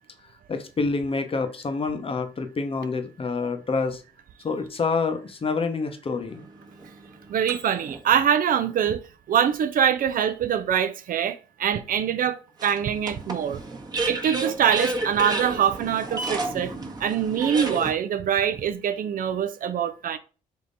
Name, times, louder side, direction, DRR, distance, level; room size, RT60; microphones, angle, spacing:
voice 1, 0.5-4.0 4.4-6.5, left 4 dB, 35° left, 0.8 m, -27 dB
sound 1, 6.3-8.0 8.7-8.8 12.6-17.9, right 2 dB, 25° right, 1.0 m, -31 dB
voice 2, 7.3-9.0 9.3-13.6 14.1-16.7 17.0-20.2, right 8 dB, 55° right, 0.5 m, -24 dB
3.6 x 2.8 x 3.9 m
supercardioid pair, 65°, 17 cm